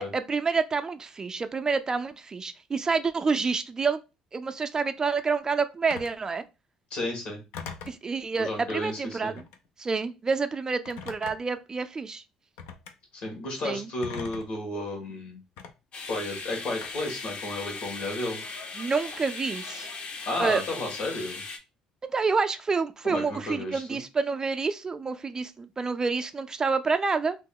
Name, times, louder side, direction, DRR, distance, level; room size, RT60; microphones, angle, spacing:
voice 1, 0.0-4.0 4.3-6.4 7.9-9.4 9.8-12.2 13.6-13.9 18.8-19.9 20.4-20.6 22.1-27.4, right 4 dB, 30° right, 0.3 m, -28 dB
Telephone, 5.9-6.2 7.5-8.0 9.3-9.7 10.9-11.6 12.6-12.9 14.0-14.6 15.6-15.7 16.8-17.2, left 6 dB, 85° left, 0.5 m, -40 dB
voice 2, 6.9-7.4 8.4-9.3 13.1-15.4 16.1-18.4 20.3-21.4 23.0-23.8, left 2 dB, 65° left, 1.5 m, -32 dB
sound 1, 15.9-21.6, left 4 dB, 50° left, 0.7 m, -38 dB
3.0 x 2.0 x 3.6 m
supercardioid pair, 80°, 2 cm